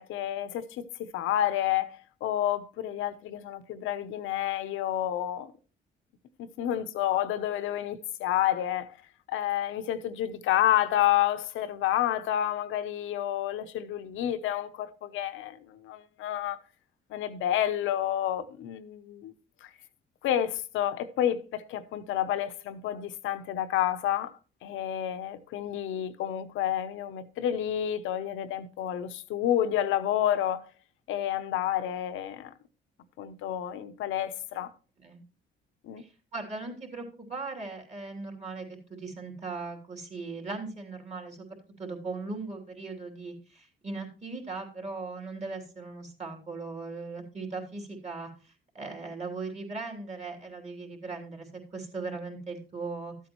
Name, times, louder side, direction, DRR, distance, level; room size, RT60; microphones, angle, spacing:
voice 1, 0.0-5.5 6.4-9.0 9.3-16.6 17.1-19.3 19.6-19.7 20.2-24.3 24.6-30.7 31.1-32.5 33.2-34.7 35.8-36.0, left 11 dB, 90° left, 0.8 m, -29 dB
voice 2, 36.0-41.5 41.8-53.3, right 3 dB, 35° right, 3.1 m, -39 dB
13.0 x 8.2 x 3.0 m
cardioid pair, 90°, 20 cm